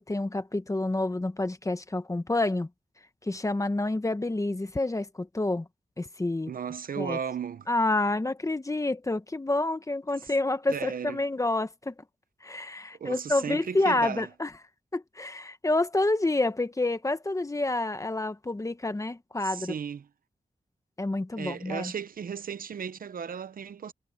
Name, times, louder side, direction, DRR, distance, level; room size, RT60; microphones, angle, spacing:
voice 1, 0.0-2.7 3.2-5.7 6.0-6.5 7.0-7.2 7.7-11.9 12.4-14.5 14.9-19.7 21.0-21.9, left 2 dB, 20° left, 1.3 m, -28 dB
voice 2, 6.5-7.7 10.7-11.3 13.0-14.3 19.4-20.1 21.4-23.9, right 7 dB, 80° right, 0.8 m, -35 dB
wide cardioid pair, 100°, 14 cm